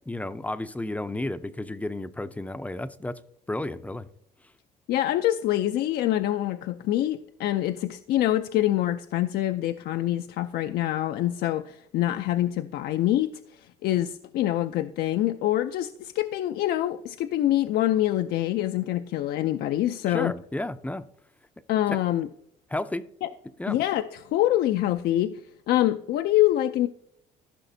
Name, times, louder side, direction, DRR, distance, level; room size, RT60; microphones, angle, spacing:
voice 1, 0.1-3.2 3.5-4.1 20.1-21.0 22.7-23.1 23.6-23.8, left 1 dB, 10° left, 0.4 m, -32 dB
voice 2, 4.9-20.3 21.7-22.3 23.2-23.3 23.7-25.4 25.7-26.9, left 13 dB, 70° left, 0.4 m, -25 dB
14.5 x 6.0 x 2.6 m
cardioid pair, 110°, 17 cm